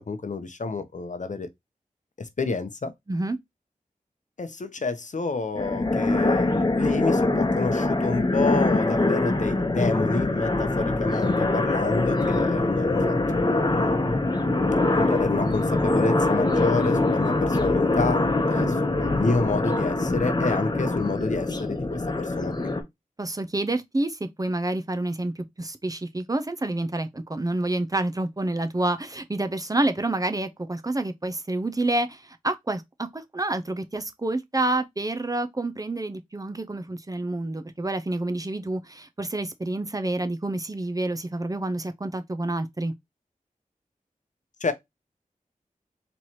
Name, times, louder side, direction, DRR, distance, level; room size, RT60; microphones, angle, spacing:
voice 1, 0.0-1.5 2.2-2.9 4.4-14.0 14.9-18.2 18.5-22.5 44.6-44.7, left 3 dB, 60° left, 0.7 m, -29 dB
sound 1, 5.5-22.8, left 2 dB, 30° left, 0.9 m, -23 dB
voice 2, 23.2-42.9, right 2 dB, 25° right, 0.5 m, -28 dB
4.3 x 3.1 x 2.8 m
wide cardioid pair, 75°, 14 cm